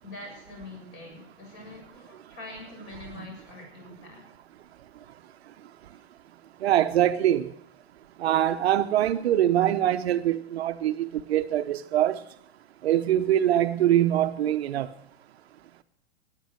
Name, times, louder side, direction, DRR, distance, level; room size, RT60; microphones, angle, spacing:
voice 1, 0.0-4.3 5.9-6.0, left 2 dB, 30° left, 7.3 m, -44 dB
voice 2, 6.6-7.5 8.2-12.2 12.8-14.9, right 12 dB, 65° right, 1.0 m, -23 dB
19.0 x 9.3 x 6.5 m
hypercardioid pair, 155°, 34 cm